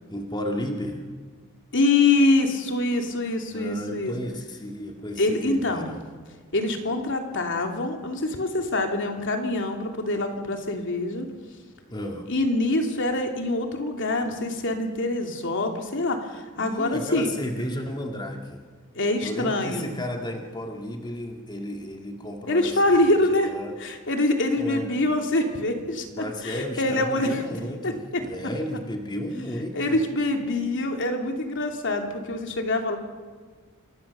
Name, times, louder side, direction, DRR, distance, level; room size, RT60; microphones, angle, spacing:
voice 1, 0.1-1.0 3.5-6.0 11.9-12.3 16.6-18.6 19.2-23.7 24.6-24.9 26.1-30.0, equal, 20° left, 2 dB, 2.1 m, -33 dB
voice 2, 1.7-4.1 5.2-5.9 6.5-11.3 12.3-17.3 18.9-19.9 22.5-23.5 23.8-27.4 27.8-28.2 29.7-33.0, left 2 dB, 60° left, 3 dB, 2.9 m, -25 dB
27.5 x 21.5 x 6.9 m, 1.5 s
head